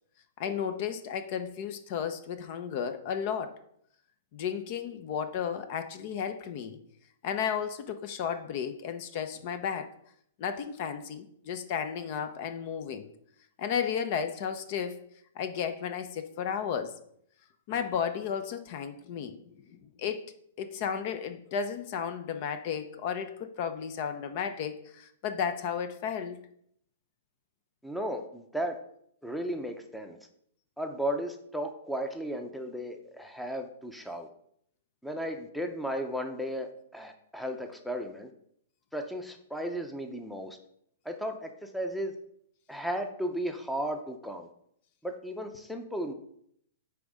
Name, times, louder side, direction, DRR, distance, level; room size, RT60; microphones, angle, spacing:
voice 1, 0.4-3.6 4.3-6.8 7.2-9.9 10.4-13.1 13.6-15.0 15.4-17.0 17.7-20.3 20.6-26.4, left 7 dB, 45° left, 10 dB, 0.7 m, -33 dB
voice 2, 27.8-28.8 29.2-30.2 30.8-34.3 35.0-38.3 38.9-40.6 41.0-42.1 42.7-44.5 45.0-46.1, equal, ahead, 5 dB, 0.7 m, -35 dB
9.5 x 3.6 x 5.0 m, 0.70 s
hypercardioid pair, 140°, 0 cm